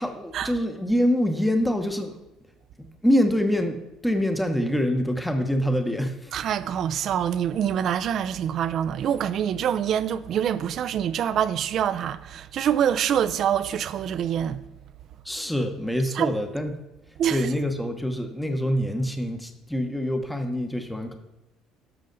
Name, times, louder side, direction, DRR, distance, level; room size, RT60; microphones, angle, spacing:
voice 1, 0.0-2.2 2.8-6.3 15.2-16.7 17.3-21.2, equal, 5° left, 1.0 m, -25 dB
voice 2, 6.3-14.6 16.1-16.3 17.2-17.5, right 9 dB, 60° right, 0.5 m, -25 dB
11.0 x 6.3 x 4.0 m
supercardioid pair, 80°, 0 cm